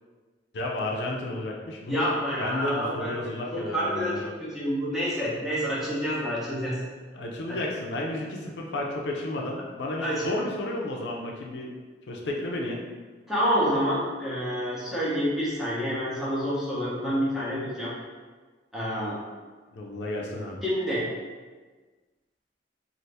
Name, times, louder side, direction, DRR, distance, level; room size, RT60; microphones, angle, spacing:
voice 1, 0.5-4.2 7.1-11.7 12.1-12.8 19.7-20.6, left 1 dB, 75° left, -1 dB, 0.4 m, -32 dB
voice 2, 1.9-6.8 7.5-7.6 10.0-10.3 13.3-17.9 18.7-19.2 20.6-21.1, equal, ahead, -9 dB, 0.8 m, -28 dB
2.7 x 2.5 x 3.3 m, 1.4 s
head